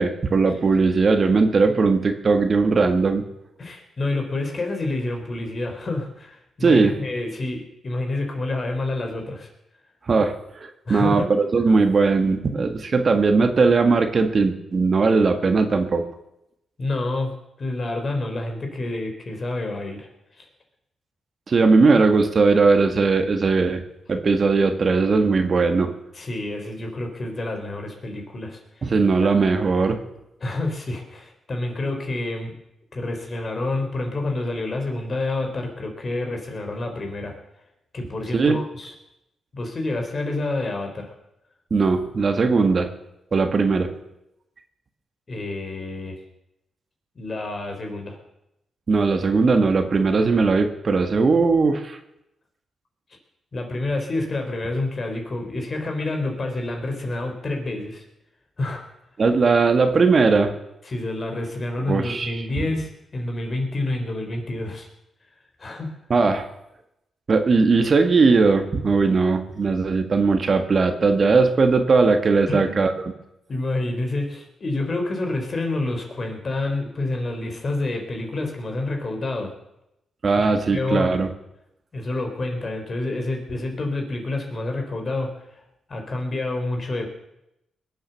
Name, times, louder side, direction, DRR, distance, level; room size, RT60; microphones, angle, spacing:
voice 1, 0.0-3.2 6.6-6.9 10.1-16.0 21.5-23.8 24.1-25.9 28.8-30.0 38.3-38.6 41.7-42.9 43.3-43.9 48.9-52.0 59.2-60.5 61.9-62.6 66.1-66.5 67.3-72.9 80.2-81.3, right 4 dB, 50° right, 7 dB, 1.6 m, -19 dB
voice 2, 3.6-9.5 10.9-11.3 16.8-17.3 17.6-20.1 20.4-20.5 26.1-28.9 29.2-29.3 30.4-32.6 32.9-37.4 37.9-38.9 39.5-41.1 45.3-46.2 47.2-48.2 53.5-58.0 58.6-58.8 60.8-64.9 65.6-66.0 72.5-72.8 73.5-79.5 80.3-81.2 81.9-85.3 85.9-87.1, left 2 dB, 45° left, 3 dB, 3.8 m, -28 dB
20.5 x 7.8 x 7.0 m, 0.86 s
cardioid pair, 70°, 0 cm